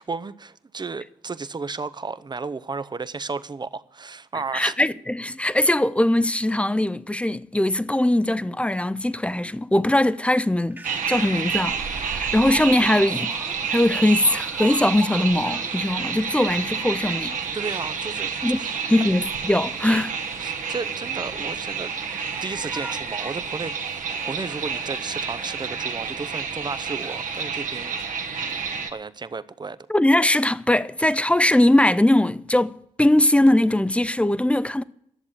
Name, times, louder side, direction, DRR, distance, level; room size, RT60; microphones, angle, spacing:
voice 1, 0.0-4.8 17.5-18.3 18.6-19.1 20.4-21.9 22.4-23.8 24.1-28.0 28.4-29.8, right 4 dB, 30° right, 0.7 m, -33 dB
voice 2, 4.5-10.8 11.1-13.4 13.6-17.4 18.4-18.6 18.9-20.1 29.9-34.8, left 1 dB, 10° left, 0.6 m, -21 dB
Speech, 10.4-10.5 10.7-11.2 12.0-15.9 16.3-18.0 18.5-19.3 20.3-20.8 21.5-23.6 24.1-24.9 25.3-25.8 26.4-26.5 27.0-27.3 27.8-28.0, right 2 dB, 15° right, 1.4 m, -43 dB
sound 1, 10.8-28.9, right 6 dB, 65° right, 1.4 m, -29 dB
11.0 x 7.3 x 9.7 m
hypercardioid pair, 40°, 14 cm